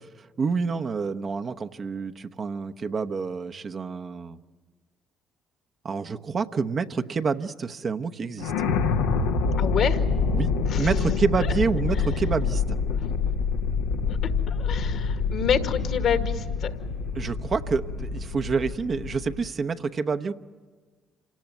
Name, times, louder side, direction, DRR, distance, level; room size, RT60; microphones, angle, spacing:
voice 1, 0.0-4.4 5.8-8.5 10.3-10.5 10.8-12.8 17.1-20.3, right 5 dB, 50° right, 8 dB, 0.9 m, -28 dB
sound 1, 8.4-19.5, left 5 dB, 90° left, 1.1 m, -26 dB
voice 2, 9.6-10.0 10.6-10.9 11.4-11.5 12.9-13.1 14.1-16.7, left 7 dB, 65° left, 7 dB, 1.9 m, -28 dB
27.5 x 18.0 x 9.2 m, 1.4 s
hypercardioid pair, 50°, 0 cm